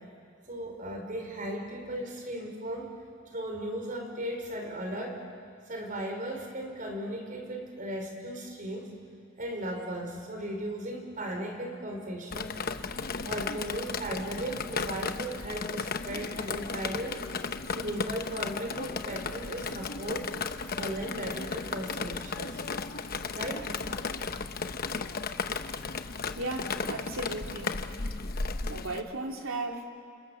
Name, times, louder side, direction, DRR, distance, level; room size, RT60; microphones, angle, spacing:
voice 1, 0.5-2.9 3.3-5.2 5.7-8.9 9.4-12.5 13.2-17.2 17.7-20.3 20.7-22.6 23.3-23.7, right 1 dB, 40° right, 3 dB, 4.6 m, -36 dB
Drip, 12.3-29.0, left 4 dB, 45° left, 1.0 m, -35 dB
voice 2, 26.3-27.9 28.7-29.8, right 2 dB, 90° right, 2 dB, 2.9 m, -36 dB
30.0 x 27.5 x 7.0 m, 2.3 s
head